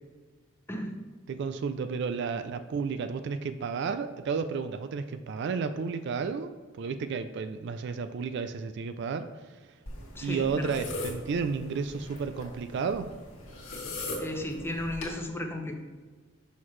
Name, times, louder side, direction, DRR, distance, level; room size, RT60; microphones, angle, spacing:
voice 1, 0.7-1.0 10.1-10.8 14.2-15.7, left 1 dB, 10° left, 3 dB, 0.6 m, -34 dB
voice 2, 1.3-9.3 10.2-13.1, right 5 dB, 55° right, 11 dB, 0.3 m, -32 dB
sound 1, 9.9-15.2, left 2 dB, 70° left, 1.6 m, -40 dB
6.1 x 5.7 x 3.1 m, 1.4 s
head